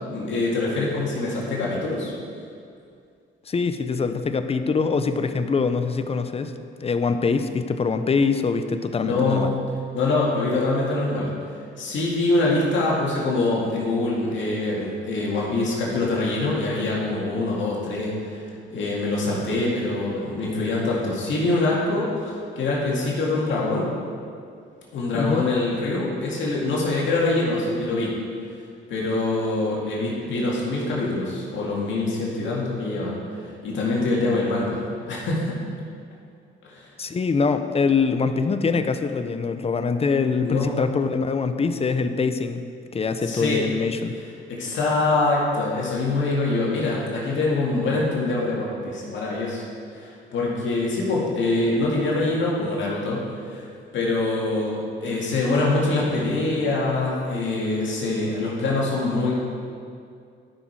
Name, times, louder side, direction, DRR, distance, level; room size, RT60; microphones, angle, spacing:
voice 1, 0.1-2.1 9.0-9.5 9.9-11.3 11.8-23.9 24.9-28.1 28.9-34.8 35.1-35.6 36.6-36.9 40.4-40.8 43.2-43.6 44.5-49.7 49.9-53.7 53.9-59.3, left 2 dB, 70° left, -5 dB, 2.1 m, -24 dB
voice 2, 3.5-6.5 6.8-9.5 25.1-25.5 37.0-44.2, left 4 dB, 30° left, 9 dB, 0.6 m, -24 dB
11.5 x 6.1 x 4.7 m, 2.3 s
cardioid pair, 90°, 20 cm